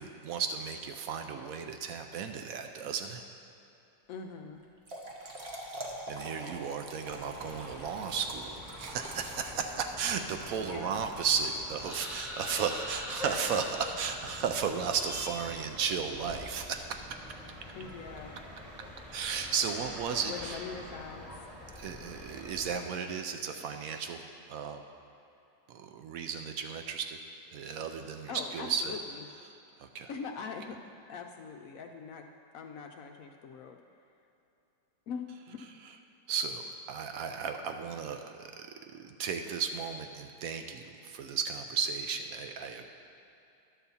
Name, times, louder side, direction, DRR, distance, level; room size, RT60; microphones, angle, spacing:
voice 1, 0.0-3.2 6.1-17.0 19.1-20.6 21.7-24.2 24.5-24.8 25.7-27.2 27.5-29.0 29.8-30.1 36.3-38.7 38.9-42.9, right 6 dB, 70° right, 6 dB, 0.9 m, -34 dB
voice 2, 4.1-4.6 10.6-11.1 17.7-18.4 20.3-21.3 28.3-29.3 30.1-30.8 31.1-32.3 32.5-33.8 35.1-35.6, left 5 dB, 70° left, 4 dB, 0.8 m, -42 dB
Trickle dribble / Fill (with liquid), 4.6-12.1, right 1 dB, 40° right, 1.1 m, -45 dB
sound 1, 7.1-22.9, left 1 dB, ahead, 1.2 m, -46 dB
sound 2, 11.8-15.6, left 2 dB, 25° left, 1.4 m, -43 dB
11.5 x 4.0 x 7.0 m, 2.8 s
omnidirectional pair, 1.8 m